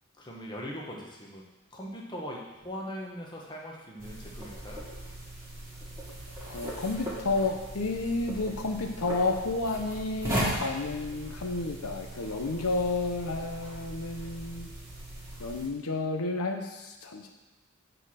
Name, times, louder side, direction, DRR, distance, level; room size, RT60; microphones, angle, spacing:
voice 1, 0.2-1.4 1.7-4.8, equal, 20° left, -2 dB, 1.1 m, -40 dB
sound 1, 4.0-15.7, right 1 dB, 15° right, 1.7 m, -38 dB
voice 2, 6.5-14.7 15.4-17.3, left 3 dB, 85° left, 3 dB, 0.8 m, -31 dB
7.8 x 4.4 x 6.4 m, 1.1 s
head